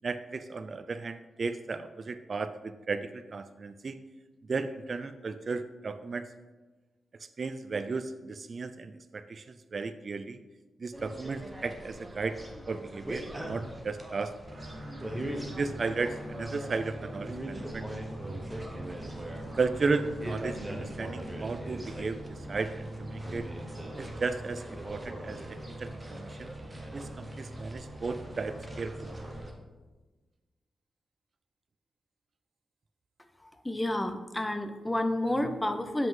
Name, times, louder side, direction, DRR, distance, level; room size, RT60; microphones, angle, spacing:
voice 1, 0.0-4.0 4.4-6.3 7.2-10.4 10.8-12.4 12.7-14.4 15.6-17.9 19.5-23.5 24.0-26.5 26.9-29.2, right 4 dB, 45° right, 11 dB, 0.3 m, -35 dB
sound 1, 10.9-29.5, right 1 dB, 10° right, 0.9 m, -42 dB
sound 2, 14.4-29.5, right 1 dB, 70° right, 2.4 m, -43 dB
voice 2, 33.4-36.1, left 1 dB, 10° left, 8 dB, 0.5 m, -30 dB
7.7 x 5.2 x 3.7 m, 1.2 s
wide cardioid pair, 115°, 0 cm